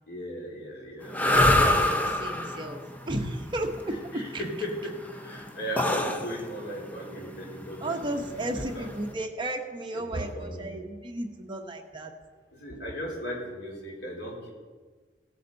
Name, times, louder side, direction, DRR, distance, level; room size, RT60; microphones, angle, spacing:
voice 1, 0.1-2.1 3.9-8.9 9.9-10.8 12.5-14.5, equal, 70° left, -2 dB, 3.7 m, -37 dB
sound 1, 1.1-9.1, left 1 dB, 10° left, 0.8 m, -26 dB
voice 2, 1.3-2.8 3.1-3.7 4.3-4.4 7.8-12.1, right 1 dB, 30° right, 3 dB, 1.2 m, -34 dB
17.5 x 8.4 x 4.1 m, 1.4 s
head